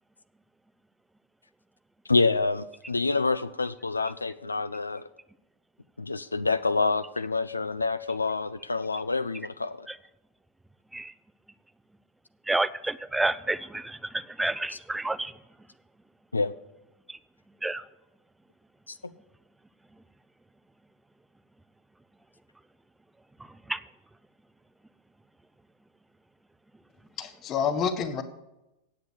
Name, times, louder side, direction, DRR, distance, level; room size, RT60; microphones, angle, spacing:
voice 1, 2.1-5.1 6.0-9.9 14.7-14.8 16.3-16.5 18.9-19.0, left 3 dB, 80° left, 12 dB, 0.3 m, -27 dB
voice 2, 12.5-15.3 17.1-17.2 17.6-17.8 23.7-23.8, right 2 dB, 5° right, 16 dB, 0.4 m, -29 dB
voice 3, 27.2-28.2, left 6 dB, 30° left, 10 dB, 1.1 m, -28 dB
8.6 x 8.0 x 8.2 m, 0.94 s
figure-of-eight pair, 90°, 0 cm